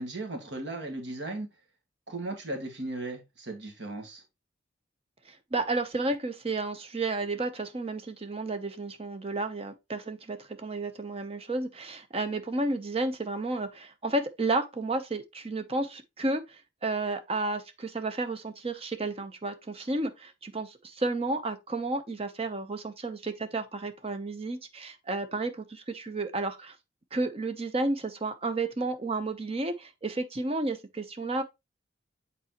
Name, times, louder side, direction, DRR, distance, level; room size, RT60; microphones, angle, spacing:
voice 1, 0.0-1.5 2.1-4.2, right 2 dB, 65° right, 1.8 m, -36 dB
voice 2, 5.3-26.8 27.1-31.4, right 2 dB, 30° right, 0.8 m, -32 dB
8.1 x 4.0 x 3.0 m
head